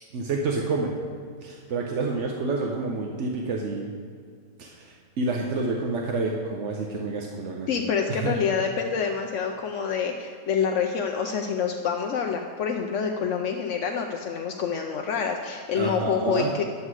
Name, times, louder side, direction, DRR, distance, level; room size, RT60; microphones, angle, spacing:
voice 1, 0.1-0.9 1.4-3.9 4.6-7.7 8.1-8.3 15.7-16.5, right 3 dB, 55° right, 0 dB, 0.9 m, -28 dB
voice 2, 7.7-16.6, left 6 dB, 70° left, 3 dB, 0.7 m, -27 dB
11.0 x 8.0 x 4.8 m, 2.1 s
omnidirectional pair, 2.0 m